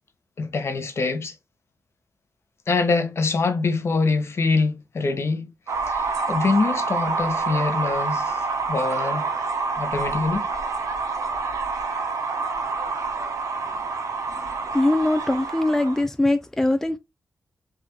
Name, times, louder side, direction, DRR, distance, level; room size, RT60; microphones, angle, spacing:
voice 1, 0.4-1.3 2.7-5.5 5.9-9.3 9.8-10.5, left 4 dB, 55° left, 0.7 m, -24 dB
sound 1, 5.7-16.0, right 4 dB, 75° right, 0.6 m, -27 dB
voice 2, 14.7-17.0, left 1 dB, 5° left, 0.3 m, -21 dB
3.3 x 2.4 x 2.9 m
cardioid pair, 85°, 5 cm